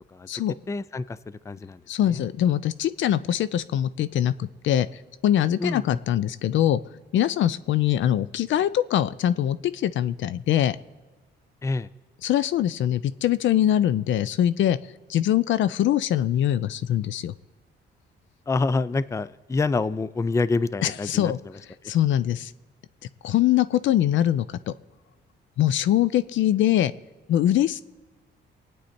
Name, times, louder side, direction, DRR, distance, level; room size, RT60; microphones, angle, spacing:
voice 1, 0.7-1.8 2.1-2.2 5.6-5.8 11.6-11.9 18.5-21.3, left 3 dB, 15° left, 17 dB, 0.4 m, -26 dB
voice 2, 1.9-4.9 5.2-6.8 7.1-10.8 12.2-14.8 15.1-17.3 20.8-21.4 21.8-22.5 23.2-24.7 25.6-26.9 27.3-27.8, left 11 dB, 70° left, 16 dB, 0.6 m, -23 dB
24.0 x 9.3 x 4.3 m, 1.3 s
cardioid pair, 90°, 20 cm